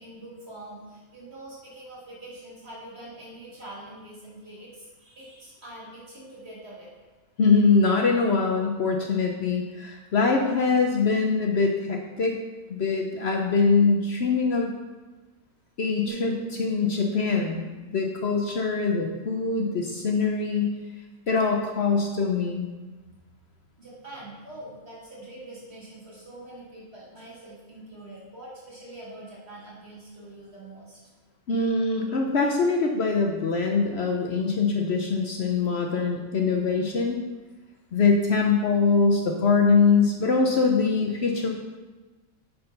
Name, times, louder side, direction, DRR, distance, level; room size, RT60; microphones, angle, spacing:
voice 1, 0.0-6.9 23.8-31.0, right 1 dB, 50° right, -7 dB, 2.7 m, -44 dB
voice 2, 7.4-12.4 12.7-14.7 15.8-17.7 17.9-20.8 21.3-22.7 31.5-37.2 37.9-41.5, left 4 dB, 60° left, 1 dB, 0.9 m, -23 dB
sound 1, 16.1-20.0 20.5-20.7, right 6 dB, 85° right, 1.4 m, -43 dB
8.6 x 4.4 x 5.6 m, 1.2 s
omnidirectional pair, 1.4 m